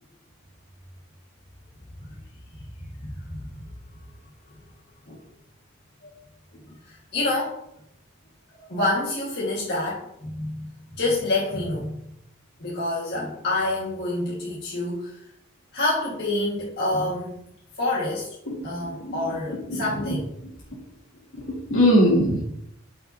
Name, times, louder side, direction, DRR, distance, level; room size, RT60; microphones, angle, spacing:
voice 1, 3.0-3.4 5.1-5.2 6.0-6.1 6.8-7.6 8.5-10.7 10.9-12.0 12.6-15.2 15.7-17.4 17.8-18.4 18.6-20.3, left 2 dB, 50° left, -6 dB, 1.7 m, -27 dB
voice 2, 18.5-20.8 21.3-22.4, equal, 70° left, -3 dB, 2.8 m, -24 dB
12.5 x 5.6 x 2.8 m, 0.76 s
head